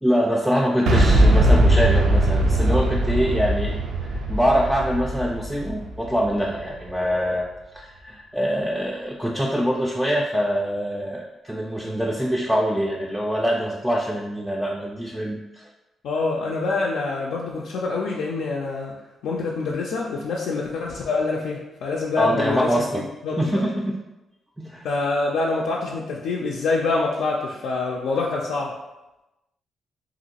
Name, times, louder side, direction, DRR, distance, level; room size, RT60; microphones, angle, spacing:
voice 1, 0.0-3.7 4.3-7.5 7.7-15.7 22.2-23.0 23.3-23.9 24.6-24.9, equal, 5° right, -2 dB, 0.3 m, -24 dB
Boom, 0.9-6.7, right 1 dB, 80° right, 0.4 m, -20 dB
voice 2, 16.0-18.9 19.2-23.6 24.8-28.8, left 3 dB, 85° left, -3 dB, 0.3 m, -26 dB
3.0 x 2.5 x 2.8 m, 0.99 s
cardioid pair, 75°, 0 cm